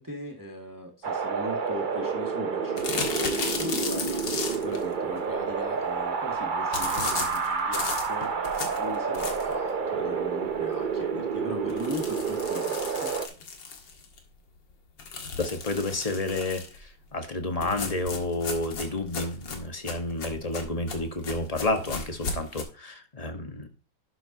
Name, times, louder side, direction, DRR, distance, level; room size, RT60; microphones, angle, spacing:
voice 1, 0.0-4.2 4.6-13.1, left 1 dB, 10° right, 1 dB, 1.9 m, -38 dB
Wind, 1.0-13.3, right 5 dB, 65° right, 0.5 m, -29 dB
sound 1, 2.8-4.8 6.7-9.6 10.1-10.2 10.5-10.6 10.9-11.0 11.7-14.2 15.0-16.8 17.6-22.6, left 4 dB, 70° left, 2.4 m, -35 dB
voice 2, 15.4-23.7, left 2 dB, 20° left, 6 dB, 1.3 m, -30 dB
11.5 x 8.0 x 2.8 m, 0.36 s
omnidirectional pair, 2.1 m